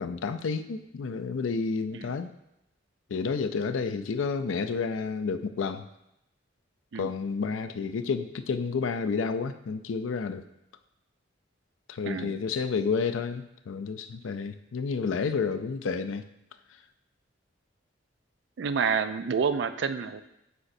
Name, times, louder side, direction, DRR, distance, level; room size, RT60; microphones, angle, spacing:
voice 1, 0.0-2.3 3.1-5.9 6.9-10.5 11.9-16.2, left 5 dB, 90° left, 10 dB, 0.4 m, -30 dB
voice 2, 12.0-12.4 18.6-20.2, right 6 dB, 65° right, 11 dB, 0.4 m, -28 dB
8.2 x 5.0 x 2.6 m, 0.85 s
head